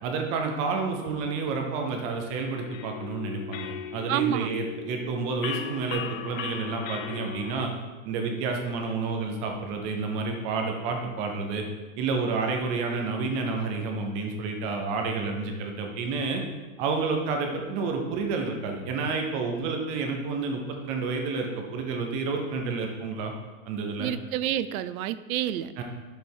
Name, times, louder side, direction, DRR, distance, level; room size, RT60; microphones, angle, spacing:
voice 1, 0.0-7.7 8.0-11.7 12.0-16.4 16.8-23.3 23.7-24.1 25.8-25.9, right 4 dB, 15° right, 3 dB, 0.3 m, -30 dB
sound 1, 2.5-7.7, left 8 dB, 65° left, 0.8 m, -37 dB
voice 2, 4.1-4.5 24.0-25.7, right 11 dB, 80° right, 14 dB, 0.7 m, -28 dB
11.0 x 6.8 x 4.3 m, 1.2 s
supercardioid pair, 180°, 42 cm